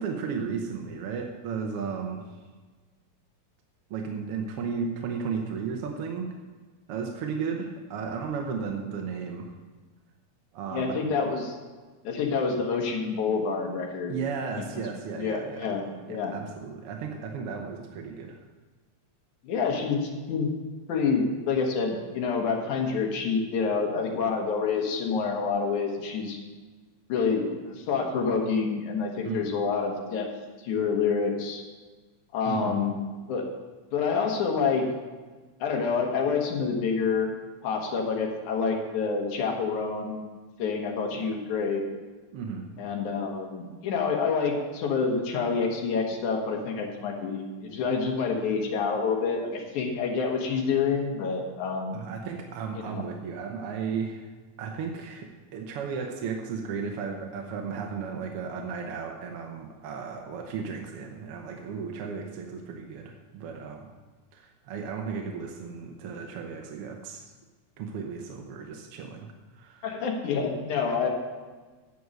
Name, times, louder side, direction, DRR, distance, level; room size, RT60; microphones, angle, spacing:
voice 1, 0.0-2.2 3.9-6.3 6.9-9.5 10.5-11.0 14.1-15.8 16.1-18.4 29.2-29.5 32.5-32.8 41.1-41.3 42.3-42.6 51.9-54.3 54.6-63.9 64.3-67.3 67.8-69.3 69.5-69.9, right 5 dB, 65° right, 3 dB, 1.4 m, -34 dB
voice 2, 10.7-11.5 12.0-14.1 14.7-14.8 15.2-16.3 19.4-20.5 20.9-26.4 27.1-30.3 30.6-31.6 32.3-33.0 33.3-33.5 33.9-34.8 35.6-37.3 37.6-40.2 40.6-41.8 42.8-52.0 52.8-53.0 69.8-71.1, left 5 dB, 80° left, 1 dB, 2.8 m, -27 dB
9.4 x 7.0 x 6.4 m, 1.3 s
omnidirectional pair, 3.4 m